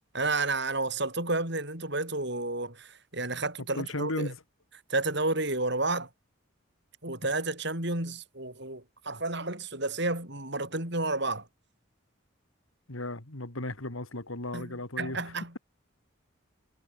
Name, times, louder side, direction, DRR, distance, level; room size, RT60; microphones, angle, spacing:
voice 1, 0.1-4.3 4.9-6.1 7.0-11.5 14.5-15.6, right 2 dB, 55° right, 7.0 m, -31 dB
voice 2, 3.7-4.4 12.9-15.3, left 2 dB, 80° left, 3.2 m, -35 dB
head